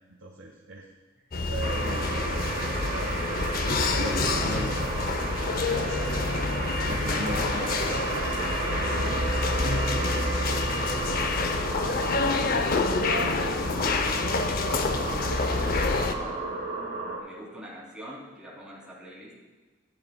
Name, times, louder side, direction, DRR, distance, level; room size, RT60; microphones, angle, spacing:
voice 1, 0.1-0.9 1.4-3.1 3.8-6.2 6.8-8.4 8.7-9.3, right 2 dB, 80° right, -1 dB, 1.1 m, -39 dB
sound 1, 1.3-16.1, left 3 dB, 45° left, 0.6 m, -27 dB
sound 2, 1.6-17.2, right 3 dB, 40° right, 1.3 m, -33 dB
voice 2, 11.8-12.1 12.6-15.8 16.2-16.7 17.2-19.3, right 1 dB, 5° right, -6 dB, 2.7 m, -45 dB
13.0 x 10.5 x 2.2 m, 1.3 s
head